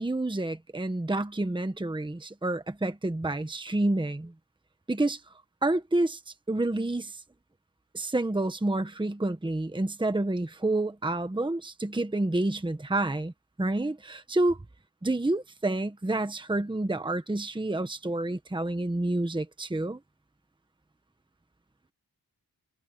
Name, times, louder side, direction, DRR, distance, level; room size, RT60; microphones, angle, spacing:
voice 1, 0.0-4.3 4.9-5.2 5.6-6.2 6.5-7.2 7.9-13.3 13.6-14.6 15.0-20.0, right 2 dB, 10° right, 1.2 m, -29 dB
wide cardioid pair, 145°, 41 cm